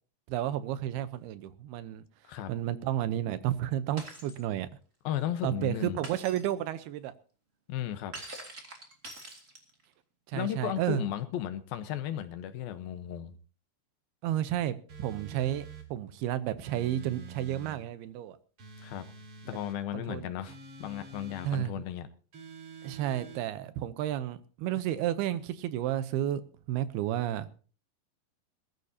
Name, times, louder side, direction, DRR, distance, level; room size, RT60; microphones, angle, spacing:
voice 1, 0.3-2.0 2.5-4.7 5.4-7.1 10.3-11.0 14.2-18.4 19.9-20.3 21.4-21.8 22.8-26.4 26.7-27.5, right 12 dB, 80° right, 2.7 m, -32 dB
Shatter, 4.0-4.4 6.0-6.5 8.1-9.8, right 2 dB, 25° right, 2.1 m, -44 dB
voice 2, 5.0-6.0 7.7-8.2 10.3-13.4 18.8-19.1 19.5-22.1, left 11 dB, 75° left, 2.7 m, -35 dB
sound 1, 14.9-15.9 16.6-17.8 18.6-19.8 20.5-21.5 22.3-23.4, right 5 dB, 45° right, 2.4 m, -47 dB
21.0 x 13.5 x 2.8 m
omnidirectional pair, 4.6 m